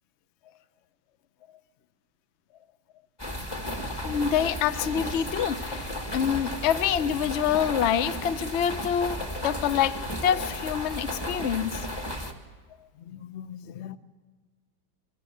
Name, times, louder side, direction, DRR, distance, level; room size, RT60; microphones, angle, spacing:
sound 1, 3.2-12.3, left 1 dB, 15° left, 1.4 m, -34 dB
voice 1, 4.0-11.9 13.0-14.0, left 9 dB, 65° left, 13 dB, 0.7 m, -27 dB
24.0 x 16.5 x 7.7 m, 1.4 s
omnidirectional pair, 2.1 m